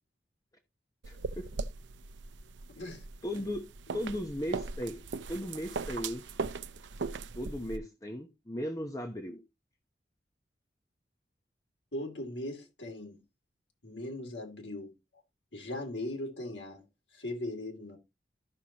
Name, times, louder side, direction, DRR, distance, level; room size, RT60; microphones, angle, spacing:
sound 1, 1.0-7.8, right 4 dB, 90° right, 0.5 m, -39 dB
voice 1, 1.1-1.5 3.2-5.0 5.3-6.2 7.3-9.4, equal, 20° left, 0.9 m, -37 dB
voice 2, 11.9-13.2 13.8-14.9 15.5-16.8 17.1-18.0, left 1 dB, 85° left, 2.7 m, -39 dB
13.0 x 5.8 x 2.8 m
head